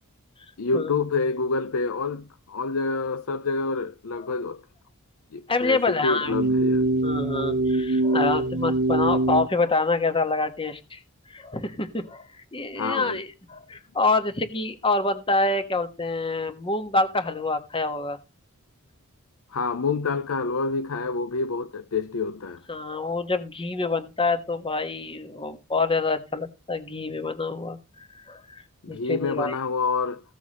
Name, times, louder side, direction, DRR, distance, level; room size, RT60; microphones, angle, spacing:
voice 1, 0.6-4.6 5.3-6.8 12.8-13.2 19.5-22.6 28.8-30.2, left 4 dB, 65° left, 0.6 m, -27 dB
voice 2, 5.5-6.3 7.0-11.0 11.3-12.3 12.5-18.2 22.7-28.4 28.9-29.5, left 3 dB, 25° left, 1.3 m, -26 dB
sound 1, 6.2-9.5, right 2 dB, 55° right, 1.1 m, -23 dB
15.5 x 7.2 x 4.2 m
head